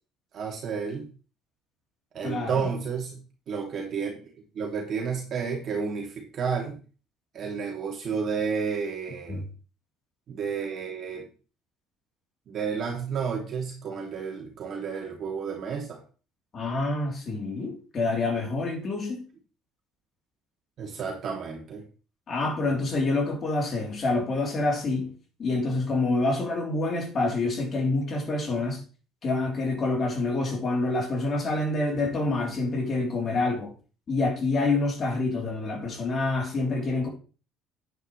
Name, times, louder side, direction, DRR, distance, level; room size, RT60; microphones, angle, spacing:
voice 1, 0.3-1.1 2.1-3.2 3.5-4.2 4.5-6.8 7.3-9.5 10.3-11.3 12.5-16.0 20.8-21.8, right 6 dB, 45° right, 2.5 m, -31 dB
voice 2, 2.2-2.7 9.3-9.4 16.5-19.2 22.3-25.1 25.4-28.8 29.2-33.7 34.1-37.1, left 2 dB, 35° left, 3.4 m, -27 dB
10.0 x 9.5 x 3.2 m
cardioid pair, 135°, 0 cm